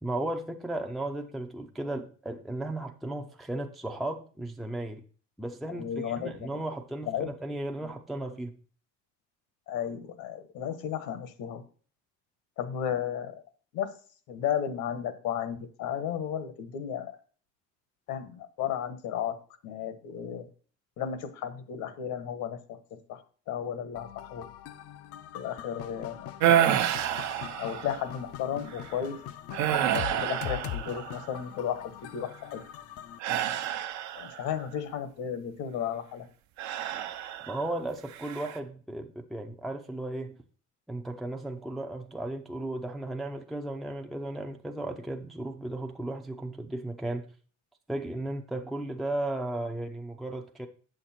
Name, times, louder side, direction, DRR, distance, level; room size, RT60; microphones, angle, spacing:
voice 1, 0.0-5.0 5.4-8.5 37.5-40.4 40.9-47.3 47.9-50.7, right 1 dB, ahead, 0.5 m, -35 dB
voice 2, 5.7-6.3 7.1-7.3 7.8-7.9 9.7-11.6 12.6-13.3 13.7-13.9 14.3-17.1 18.1-19.4 19.6-20.5 21.0-23.2 23.5-24.4 25.3-26.8 27.6-29.2 29.9-32.6 34.2-36.3, left 9 dB, 75° left, 1.3 m, -34 dB
sound 1, 24.0-33.2, left 11 dB, 50° left, 0.5 m, -42 dB
sound 2, 26.4-28.1 28.7-28.9 29.5-31.4 33.2-34.5 36.6-37.7 38.1-38.6, right 11 dB, 65° right, 0.9 m, -28 dB
8.0 x 6.6 x 4.3 m
cardioid pair, 155°, 30 cm